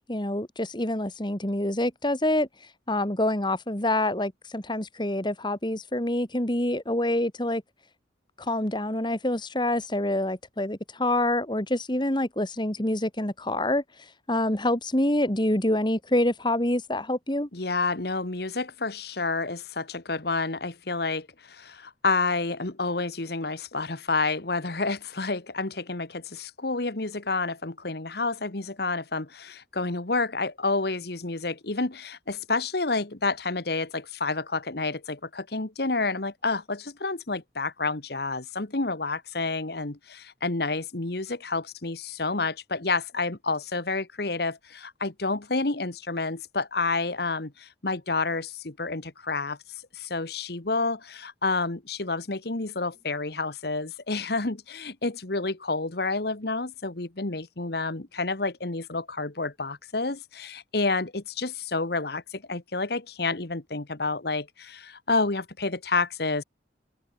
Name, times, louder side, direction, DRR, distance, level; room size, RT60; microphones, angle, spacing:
voice 1, 0.1-2.5 2.9-7.6 8.4-13.8 14.3-17.5, left 1 dB, 25° left, 2.4 m, -26 dB
voice 2, 17.5-49.6 49.9-66.4, left 3 dB, 55° left, 1.4 m, -29 dB
head